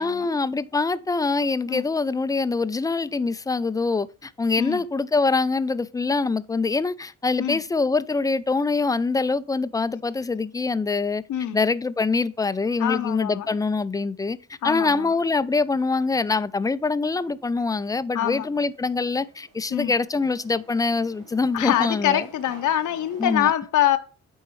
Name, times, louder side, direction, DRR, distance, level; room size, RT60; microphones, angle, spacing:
voice 1, 0.0-11.2 11.5-22.2 23.2-23.5, left 4 dB, 10° left, 0.3 m, -24 dB
voice 2, 12.8-13.5 14.6-15.1 18.1-18.5 19.7-19.9 21.5-24.0, left 11 dB, 70° left, 0.7 m, -24 dB
sound 1, 18.1-23.3, right 5 dB, 90° right, 1.2 m, -51 dB
9.6 x 4.5 x 3.1 m
cardioid pair, 100°, 31 cm